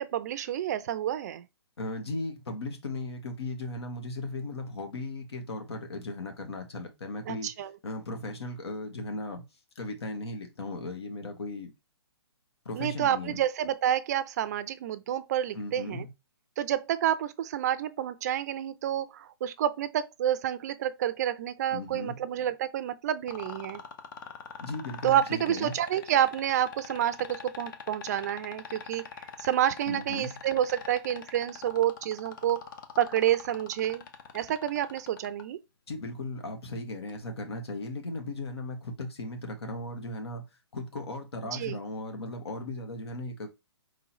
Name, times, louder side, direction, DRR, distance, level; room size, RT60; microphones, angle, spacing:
voice 1, 0.0-1.4 7.3-7.7 12.8-16.1 16.6-23.8 25.0-29.0 29.4-32.7 33.0-34.0 34.3-35.6 41.5-41.8, right 11 dB, 40° right, 0.5 m, -29 dB
voice 2, 1.8-7.5 7.8-9.4 9.7-11.7 12.6-13.4 15.5-16.1 21.7-22.2 24.6-25.8 29.9-30.4 35.9-40.4 40.7-43.5, left 2 dB, 75° left, 1.7 m, -37 dB
sound 1, 23.3-35.4 37.1-37.2, left 6 dB, 50° left, 0.9 m, -42 dB
4.7 x 3.7 x 3.0 m
hypercardioid pair, 145°, 14 cm